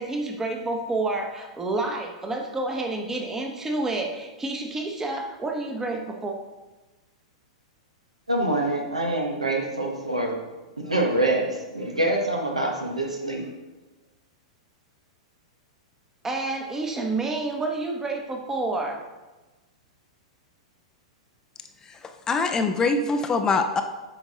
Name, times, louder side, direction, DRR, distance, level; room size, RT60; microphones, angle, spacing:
voice 1, 0.0-6.4 16.2-19.1, right 2 dB, 10° right, 2 dB, 1.0 m, -29 dB
voice 2, 8.3-10.4 10.8-13.5, right 1 dB, 85° right, 1 dB, 1.3 m, -25 dB
voice 3, 21.8-23.8, left 3 dB, 20° left, 7 dB, 0.5 m, -24 dB
8.0 x 5.1 x 3.9 m, 1.1 s
figure-of-eight pair, 100°, 3 cm